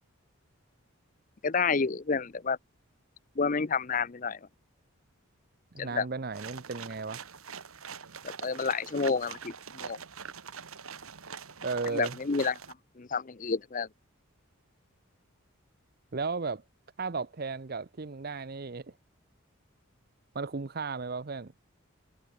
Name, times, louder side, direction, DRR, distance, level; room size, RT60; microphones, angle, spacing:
voice 1, 1.4-2.6 3.4-4.4 5.8-6.1 8.2-10.0 11.9-12.5 13.0-13.9, left 5 dB, 35° left, 0.6 m, -29 dB
voice 2, 5.7-7.2 11.6-12.2 16.1-16.6 17.0-18.9 20.3-21.5, right 4 dB, 45° right, 0.7 m, -35 dB
sound 1, 6.3-12.7, right 6 dB, 80° right, 1.8 m, -44 dB
head